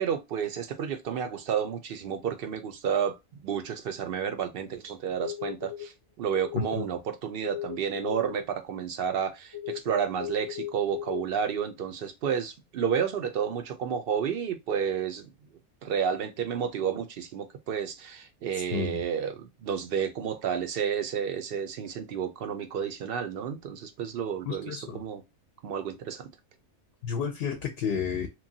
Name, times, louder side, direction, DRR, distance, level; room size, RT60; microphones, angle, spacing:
voice 1, 0.0-3.2 3.4-5.9 6.2-15.3 15.8-25.2 25.6-26.3, right 8 dB, 60° right, 0.7 m, -31 dB
sound 1, 5.2-5.9 6.3-6.9 7.4-8.4 9.5-11.2, left 12 dB, 25° left, 0.7 m, -36 dB
voice 2, 6.5-6.9 18.7-19.0 24.5-25.0 27.0-28.3, left 6 dB, 65° left, 0.7 m, -31 dB
3.0 x 2.2 x 2.6 m
omnidirectional pair, 1.2 m